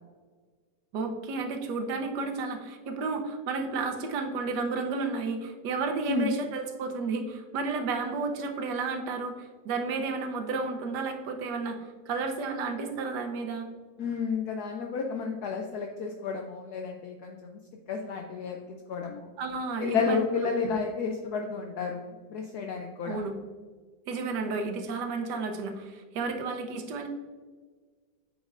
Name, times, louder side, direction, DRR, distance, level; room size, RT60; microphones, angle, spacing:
voice 1, 0.9-13.7 19.4-20.2 20.6-20.7 23.0-23.3 24.1-27.1, right 4 dB, 75° right, 5 dB, 1.4 m, -32 dB
voice 2, 14.0-17.6 17.9-19.3 19.8-23.2, left 5 dB, 70° left, 3 dB, 1.0 m, -31 dB
8.7 x 5.2 x 2.5 m, 1.5 s
omnidirectional pair, 1.9 m